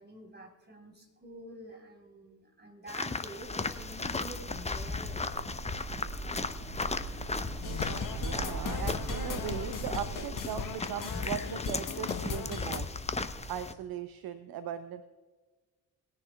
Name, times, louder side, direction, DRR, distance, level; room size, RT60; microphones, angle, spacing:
voice 1, 0.0-5.4, right 2 dB, 20° right, 2 dB, 4.2 m, -48 dB
sound 1, 2.9-13.7, left 3 dB, 15° left, 0.8 m, -36 dB
sound 2, 3.4-13.5, right 2 dB, 85° right, 2.7 m, -42 dB
sound 3, 7.6-12.8, left 6 dB, 45° left, 1.3 m, -38 dB
voice 2, 7.9-13.0 13.5-15.0, right 9 dB, 50° right, 11 dB, 0.8 m, -39 dB
21.0 x 10.5 x 2.4 m, 1.4 s
figure-of-eight pair, 40°, 46 cm